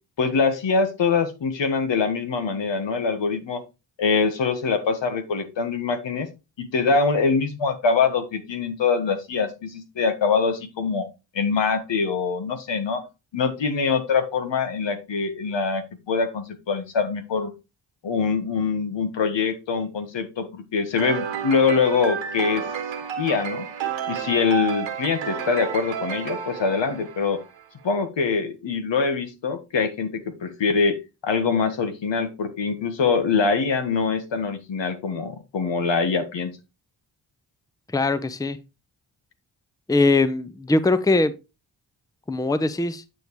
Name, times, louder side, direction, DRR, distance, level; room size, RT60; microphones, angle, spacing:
voice 1, 0.2-3.6 4.0-6.3 6.6-11.1 11.3-13.0 13.3-17.5 18.0-22.6 23.2-23.7 24.1-27.4 27.8-31.0 31.2-36.5, left 5 dB, 70° left, 1.5 m, -24 dB
sound 1, 21.0-27.6, right 8 dB, 75° right, 1.3 m, -31 dB
voice 2, 37.9-38.6 39.9-41.3 42.3-43.0, left 2 dB, 10° left, 0.7 m, -21 dB
9.1 x 5.3 x 3.1 m
supercardioid pair, 45°, 46 cm